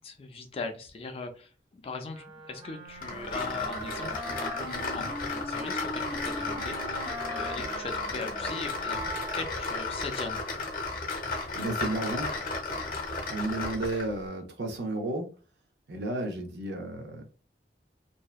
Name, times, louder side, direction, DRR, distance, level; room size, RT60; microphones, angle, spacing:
voice 1, 0.0-10.4, left 3 dB, 35° left, 0.4 m, -40 dB
Wind instrument woodwind instrument, 2.1-10.1, equal, 25° right, 0.5 m, -41 dB
sound 1, 3.0-14.1, left 3 dB, 50° left, 0.7 m, -34 dB
sound 2, 6.1-10.9 11.2-11.5, left 1 dB, 50° right, 0.9 m, -43 dB
voice 2, 11.5-12.3 13.3-15.3 15.9-17.2, right 2 dB, 75° right, 0.6 m, -32 dB
2.7 x 2.1 x 2.3 m
head